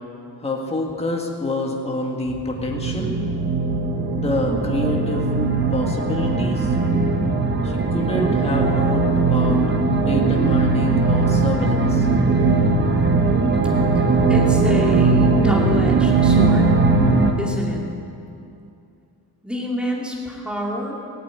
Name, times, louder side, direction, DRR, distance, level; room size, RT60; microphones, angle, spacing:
voice 1, 0.4-3.2 4.2-5.3 5.7-6.8 7.6-9.6 10.0-12.1, left 1 dB, 15° left, 0 dB, 1.9 m, -27 dB
sound 1, 2.3-17.3, right 3 dB, 25° right, 1.1 m, -19 dB
voice 2, 14.3-16.7 17.4-17.8 19.4-21.0, equal, ahead, -3 dB, 2.4 m, -27 dB
18.0 x 8.5 x 9.0 m, 2.6 s
wide cardioid pair, 160°, 39 cm